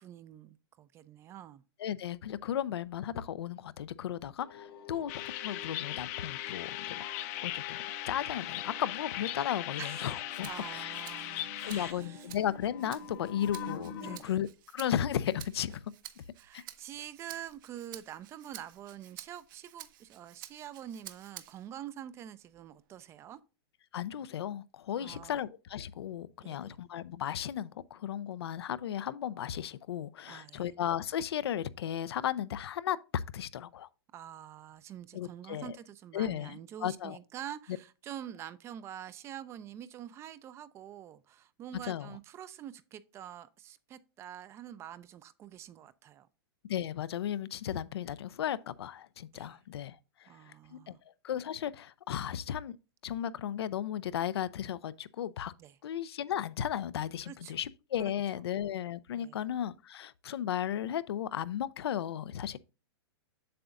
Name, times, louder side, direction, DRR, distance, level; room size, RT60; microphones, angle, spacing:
voice 1, 0.0-1.6 4.9-5.0 9.8-12.3 14.0-14.4 16.4-23.4 25.0-25.4 26.4-26.8 30.2-30.7 34.1-46.3 49.3-49.6 50.3-51.0 55.6-55.8 57.2-57.6 58.0-58.4 59.2-59.4, right 10 dB, 20° right, 0.4 m, -46 dB
voice 2, 1.8-5.1 5.4-7.0 7.4-10.9 11.6-14.5 14.7-15.9 16.5-16.6 23.9-33.9 35.1-35.8 36.1-37.2 41.9-42.1 46.7-50.9 51.2-52.8 53.0-55.5 55.8-62.6, left 10 dB, 80° left, 0.5 m, -35 dB
sound 1, 4.4-14.2, left 6 dB, 65° left, 1.4 m, -46 dB
sound 2, 5.1-11.9, left 15 dB, 40° left, 0.6 m, -39 dB
Rattle (instrument), 10.3-21.7 22.2-23.4, right 13 dB, 55° right, 0.8 m, -52 dB
7.7 x 6.9 x 2.5 m
hypercardioid pair, 145°, 13 cm